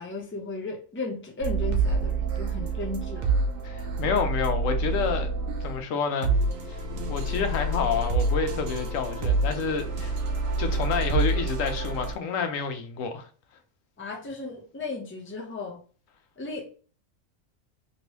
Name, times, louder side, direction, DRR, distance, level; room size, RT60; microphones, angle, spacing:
voice 1, 0.0-3.3 14.0-15.8 16.4-16.6, left 3 dB, 15° left, 0.5 m, -35 dB
sound 1, 1.4-5.8 6.2-12.1, right 3 dB, 85° right, 1.1 m, -27 dB
voice 2, 3.6-5.3 5.6-6.3 6.7-6.8 7.1-10.2 10.6-13.3, left 5 dB, 85° left, 1.0 m, -29 dB
3.1 x 2.9 x 2.9 m
omnidirectional pair, 1.3 m